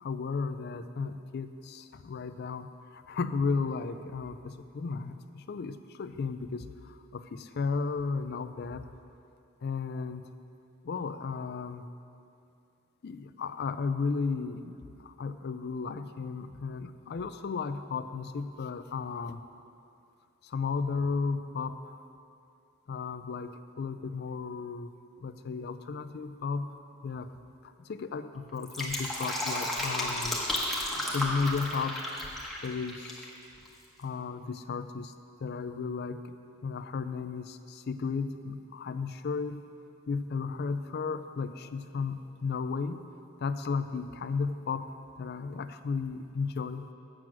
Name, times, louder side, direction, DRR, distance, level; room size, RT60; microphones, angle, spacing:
voice 1, 0.0-8.9 9.6-10.3 10.8-11.8 13.0-19.4 20.4-22.1 22.9-24.9 25.2-26.7 27.0-27.3 27.6-30.4 30.9-32.0 32.6-33.3 34.0-35.1 35.4-36.3 36.6-39.6 40.1-43.0 43.4-46.9, left 4 dB, 45° left, 11 dB, 0.4 m, -34 dB
Fill (with liquid), 28.5-33.3 33.6-33.7, left 1 dB, ahead, 0.9 m, -33 dB
7.6 x 7.6 x 6.0 m, 2.6 s
head